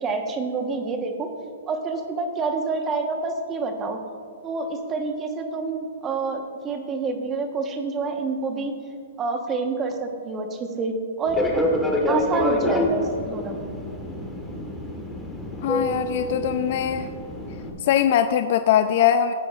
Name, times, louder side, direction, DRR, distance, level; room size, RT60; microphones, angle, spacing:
voice 1, 0.0-1.3 1.7-4.0 4.4-8.7 9.2-11.4 12.1-13.6, right 4 dB, 20° right, 5 dB, 1.2 m, -27 dB
Fixed-wing aircraft airplane, 11.3-17.7, left 1 dB, 5° left, 1.5 m, -27 dB
voice 2, 15.6-17.1 17.8-19.3, left 10 dB, 50° left, 8 dB, 0.4 m, -21 dB
17.0 x 8.3 x 2.5 m, 2.3 s
hypercardioid pair, 140°, 0 cm